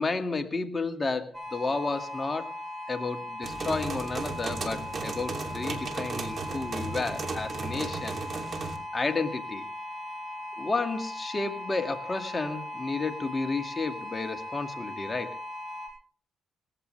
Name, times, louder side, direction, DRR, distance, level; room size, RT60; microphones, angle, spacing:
voice 1, 0.0-2.5 2.9-8.2 8.9-9.6 10.6-15.4, left 3 dB, 25° left, 6 dB, 2.1 m, -32 dB
sound 1, 1.3-15.9, left 1 dB, 10° right, 6.3 m, -39 dB
sound 2, 3.4-8.8, right 4 dB, 45° right, 3.0 m, -35 dB
19.5 x 15.5 x 3.3 m, 0.44 s
cardioid pair, 90°, 0 cm